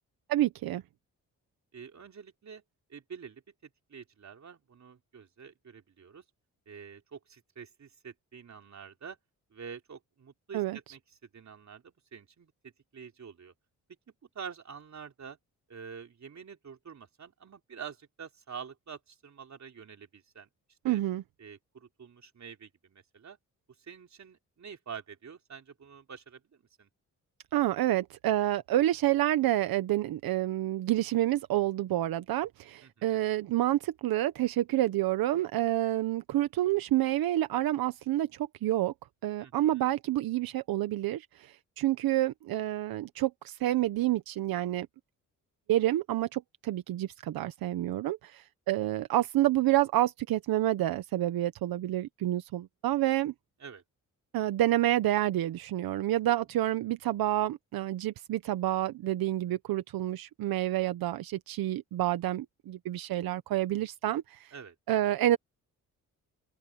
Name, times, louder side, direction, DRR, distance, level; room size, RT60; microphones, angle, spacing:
voice 1, 0.3-0.8 10.5-10.8 20.8-21.2 27.5-38.9 39.2-44.9 45.7-53.3 54.3-64.5 64.9-65.4, right 14 dB, 85° right, 1.0 m, -28 dB
voice 2, 1.7-2.6 2.9-6.2 6.7-9.2 9.5-13.5 14.4-15.4 15.7-20.5 20.8-21.0 21.4-23.4 23.8-26.9 32.8-33.3 39.4-39.8 53.6-53.8 64.5-64.8, right 6 dB, 50° right, 3.6 m, -47 dB
open air
cardioid pair, 70°, 35 cm